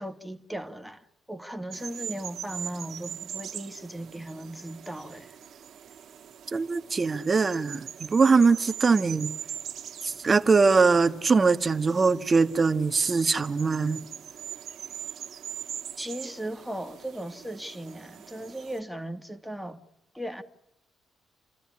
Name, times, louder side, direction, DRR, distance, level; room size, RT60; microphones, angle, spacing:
voice 1, 0.0-5.4 16.0-19.8 20.1-20.4, right 1 dB, ahead, 2.3 m, -37 dB
sound 1, 1.7-18.8, right 9 dB, 65° right, 2.1 m, -42 dB
voice 2, 6.5-9.3 10.1-14.0, right 4 dB, 30° right, 1.6 m, -22 dB
30.0 x 13.5 x 9.8 m
cardioid pair, 90°, 0 cm